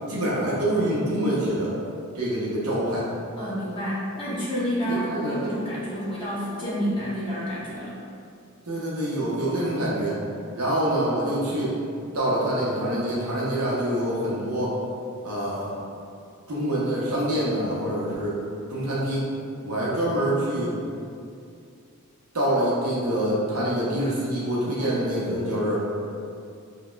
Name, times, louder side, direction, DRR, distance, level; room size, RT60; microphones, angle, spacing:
voice 1, 0.1-1.7 2.1-3.1 4.9-5.5 8.7-10.2 10.5-11.8 12.1-14.8 15.2-15.7 16.5-18.4 18.7-19.3 19.6-20.8 22.3-25.9, right 1 dB, 80° right, -7 dB, 0.7 m, -25 dB
voice 2, 3.4-8.0, equal, 25° left, -8 dB, 0.9 m, -29 dB
4.9 x 2.1 x 2.2 m, 2.4 s
head